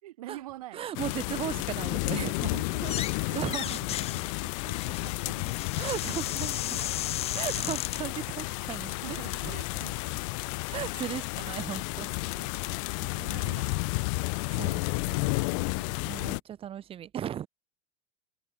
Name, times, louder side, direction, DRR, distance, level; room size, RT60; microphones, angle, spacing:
voice 1, 0.0-0.9 1.7-1.9 2.5-3.4 4.4-5.8 6.3-7.3 8.9-10.2 12.2-14.3 15.5-16.1, right 16 dB, 90° right, 7.2 m, -47 dB
voice 2, 0.7-2.6 3.3-4.3 5.8-6.8 7.3-8.9 9.4-9.6 10.7-12.1 14.5-15.6 16.0-17.5, right 10 dB, 30° right, 2.8 m, -36 dB
sound 1, 0.9-16.4, left 33 dB, 65° left, 0.4 m, -32 dB
sound 2, 2.7-3.2 3.4-8.0, left 11 dB, 35° left, 3.1 m, -36 dB
supercardioid pair, 135°, 18 cm